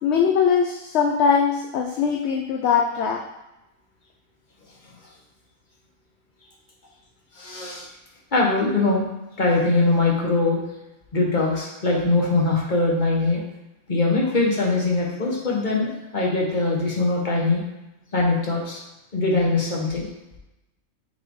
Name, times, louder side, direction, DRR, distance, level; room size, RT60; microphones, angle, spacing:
voice 1, 0.0-3.2, left 6 dB, 65° left, 1 dB, 0.8 m, -21 dB
voice 2, 7.3-7.8 8.3-9.0 9.4-10.6 11.1-13.4 13.9-17.6 18.1-18.8 19.1-20.1, left 3 dB, 35° left, -2 dB, 1.4 m, -22 dB
6.3 x 4.2 x 3.8 m, 0.94 s
omnidirectional pair, 1.4 m